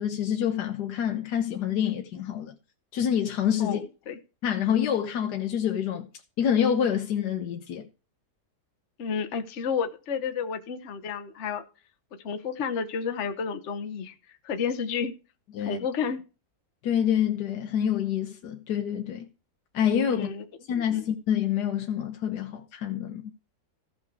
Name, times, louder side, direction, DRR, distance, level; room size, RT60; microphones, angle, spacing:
voice 1, 0.0-2.5 2.9-3.8 4.4-6.1 6.4-7.9 15.5-15.8 16.8-19.3 19.7-20.3 20.7-23.2, left 9 dB, 85° left, 1.4 m, -27 dB
voice 2, 3.6-4.2 9.0-11.6 12.2-14.1 14.4-15.1 15.6-16.2 20.1-20.4 20.9-21.1, left 6 dB, 50° left, 1.2 m, -31 dB
14.5 x 6.1 x 4.7 m
omnidirectional pair, 1.7 m